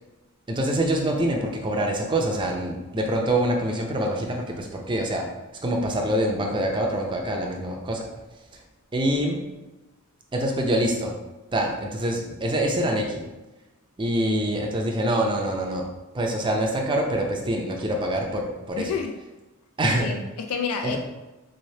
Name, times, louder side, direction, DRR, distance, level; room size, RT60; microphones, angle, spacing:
voice 1, 0.5-5.3 5.6-8.1 8.9-9.5 10.3-11.2 11.5-13.3 14.0-15.9 16.1-18.9 19.8-20.1 20.8-21.0, right 1 dB, 20° right, 1 dB, 0.5 m, -25 dB
voice 2, 18.8-19.2 20.0-21.0, left 6 dB, 90° left, 4 dB, 0.3 m, -29 dB
3.7 x 3.2 x 2.7 m, 1.1 s
head